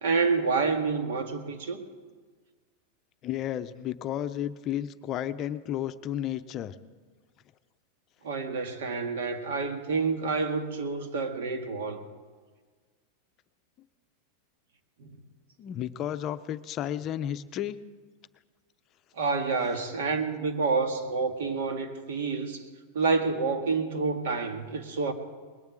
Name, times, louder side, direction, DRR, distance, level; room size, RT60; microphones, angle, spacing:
voice 1, 0.0-1.8 8.2-12.0 15.0-15.1 19.2-22.7 22.9-25.1, right 4 dB, 80° right, 6 dB, 1.7 m, -28 dB
voice 2, 3.2-6.8 15.6-17.8, left 11 dB, 35° left, 11 dB, 0.6 m, -32 dB
20.5 x 7.1 x 9.0 m, 1.5 s
supercardioid pair, 145°, 0 cm